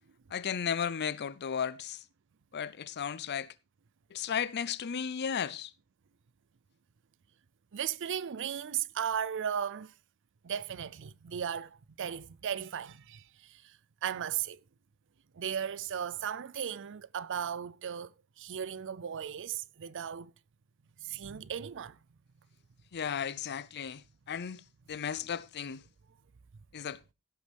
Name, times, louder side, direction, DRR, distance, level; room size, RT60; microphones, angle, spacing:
voice 1, 0.3-2.0 2.5-3.5 4.1-5.7 22.9-24.6 24.9-25.8 26.7-27.0, left 7 dB, 50° left, 0.5 m, -34 dB
voice 2, 7.7-9.9 10.4-14.6 15.3-18.1 18.4-20.3 21.0-22.0, right 8 dB, 60° right, 0.5 m, -36 dB
16.0 x 8.3 x 3.4 m
head